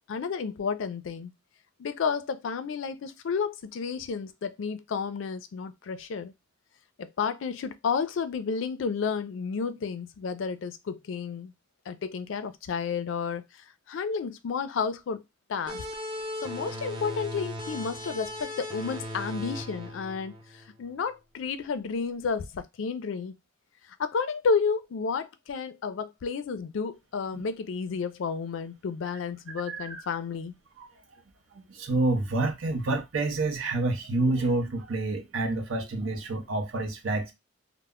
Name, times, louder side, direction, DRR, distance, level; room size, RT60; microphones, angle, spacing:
voice 1, 0.1-1.3 1.8-6.3 7.0-11.5 11.9-13.4 13.9-15.2 15.5-15.9 16.4-23.3 24.0-30.5, left 5 dB, 70° left, 0.4 m, -31 dB
sound 1, 15.7-20.9, left 1 dB, 25° right, 0.6 m, -37 dB
voice 2, 29.7-30.0 30.8-30.9 31.7-37.3, right 2 dB, 90° right, 0.6 m, -28 dB
2.1 x 2.0 x 3.5 m
head